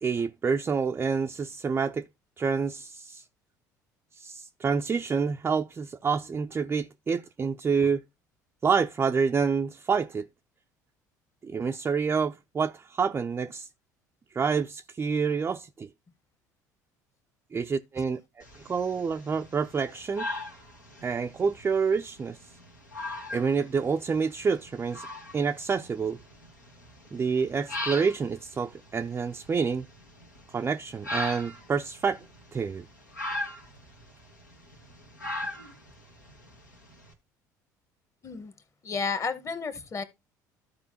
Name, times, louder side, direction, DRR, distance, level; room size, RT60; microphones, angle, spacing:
voice 1, 0.0-2.0 2.4-3.2 4.2-8.0 8.6-10.3 11.4-13.7 14.3-15.9 17.5-20.3 21.0-22.4 23.3-25.1 25.3-26.2 27.1-29.9 30.5-32.2 32.5-32.8, right 5 dB, 25° right, 0.4 m, -28 dB
sound 1, 18.4-37.1, left 1 dB, 90° left, 1.4 m, -40 dB
voice 2, 38.8-40.0, left 5 dB, 30° left, 1.2 m, -32 dB
14.0 x 4.8 x 2.8 m
figure-of-eight pair, 60°, 10 cm